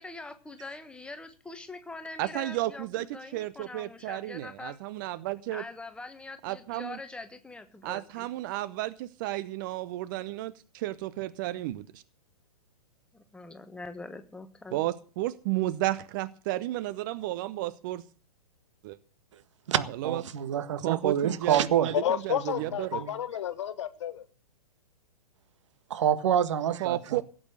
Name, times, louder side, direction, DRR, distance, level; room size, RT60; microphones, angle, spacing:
voice 1, 0.0-2.8 3.1-4.8 5.5-8.2 13.1-14.8, left 2 dB, 5° left, 1.4 m, -43 dB
voice 2, 2.2-5.6 6.4-7.0 7.8-12.0 14.7-18.0 18.8-19.0 19.9-20.2 20.8-21.9 22.2-23.0 26.8-27.2, right 16 dB, 35° right, 0.8 m, -32 dB
voice 3, 19.7-21.9 22.9-23.1 25.9-27.2, right 9 dB, 50° right, 1.7 m, -27 dB
voice 4, 21.9-24.2, left 10 dB, 50° left, 1.5 m, -31 dB
17.0 x 8.7 x 7.9 m
figure-of-eight pair, 115°, 19 cm